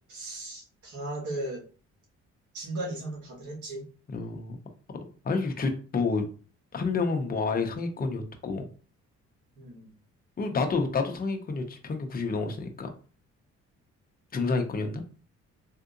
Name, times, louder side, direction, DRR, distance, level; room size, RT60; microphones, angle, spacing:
voice 1, 0.1-1.6 2.5-3.9 9.6-9.9, right 2 dB, 75° right, 1.5 m, -36 dB
voice 2, 4.1-4.6 5.2-6.3 6.7-8.7 10.4-12.9 14.3-15.0, left 4 dB, 30° left, 0.7 m, -29 dB
3.6 x 2.6 x 2.5 m
cardioid pair, 90°, 30 cm